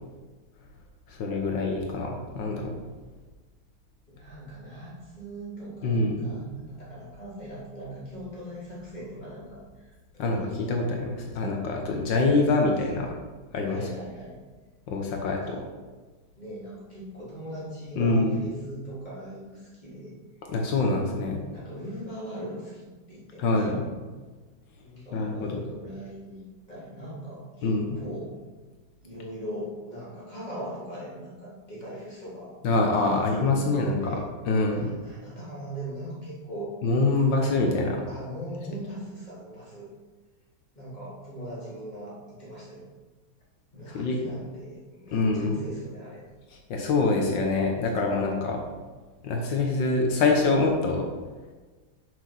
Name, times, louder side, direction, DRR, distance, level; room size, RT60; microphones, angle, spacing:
voice 1, 1.1-2.8 5.8-6.3 10.2-13.1 13.5-13.8 14.9-15.4 18.0-18.4 20.5-21.4 23.4-23.9 25.1-25.6 27.6-28.0 32.6-34.2 34.5-34.9 36.8-38.0 43.9-44.2 45.1-45.6 46.7-48.6 49.2-51.0, left 3 dB, 85° left, 1 dB, 1.8 m, -25 dB
voice 2, 4.1-10.8 11.3-11.5 12.4-13.1 13.6-14.4 15.2-15.6 16.4-20.2 21.5-23.5 24.8-26.4 26.7-28.4 29.0-32.5 33.0-34.3 34.7-36.7 37.1-37.4 38.1-39.9 40.7-42.8 43.7-46.2, right 1 dB, 25° left, -8 dB, 3.4 m, -40 dB
7.7 x 6.1 x 5.9 m, 1.3 s
omnidirectional pair, 1.9 m